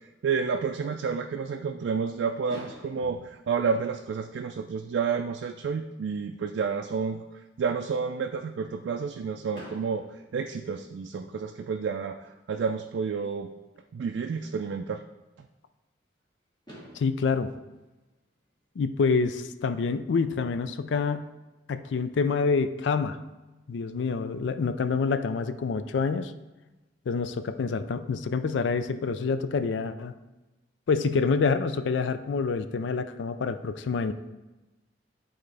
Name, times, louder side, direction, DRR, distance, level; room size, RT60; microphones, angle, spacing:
voice 1, 0.2-7.2 7.6-10.0 10.3-13.5 13.9-15.0, right 5 dB, 70° right, 5 dB, 0.3 m, -30 dB
Fireworks, 2.5-4.5 5.3-5.4 5.6-5.8 6.1-6.2 9.5-11.4 13.1-13.2 16.2-16.3 16.7-19.0, equal, 25° left, 2.3 m, -50 dB
voice 2, 16.9-17.5 18.8-21.3 21.7-23.2 23.7-26.3 27.1-30.1 30.9-34.1, left 5 dB, 75° left, 10 dB, 0.4 m, -27 dB
11.0 x 3.9 x 3.3 m, 1.1 s
head